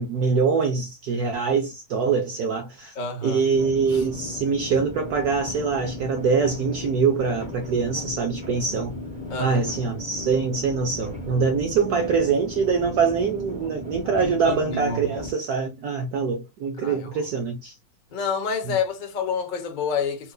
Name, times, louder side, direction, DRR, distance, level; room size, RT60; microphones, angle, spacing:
voice 1, 0.0-2.9 3.2-8.9 9.4-17.8 18.7-18.8, right 5 dB, 70° right, 0.9 m, -24 dB
voice 2, 3.0-3.4 3.9-4.0 9.3-9.6 14.2-15.2 16.8-17.1 18.1-20.3, left 5 dB, 70° left, 0.4 m, -28 dB
sound 1, 3.5-15.3, left 2 dB, 5° right, 0.8 m, -36 dB
4.4 x 2.5 x 2.3 m
omnidirectional pair, 2.2 m